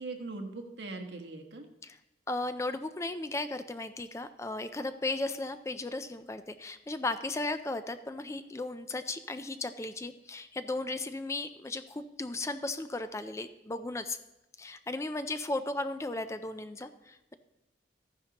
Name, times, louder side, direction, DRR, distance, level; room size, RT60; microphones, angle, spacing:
voice 1, 0.0-1.7, right 3 dB, 75° right, 3 dB, 1.2 m, -40 dB
voice 2, 2.3-14.2 14.6-17.3, left 2 dB, 15° left, 10 dB, 0.4 m, -36 dB
13.5 x 10.0 x 2.9 m, 0.96 s
head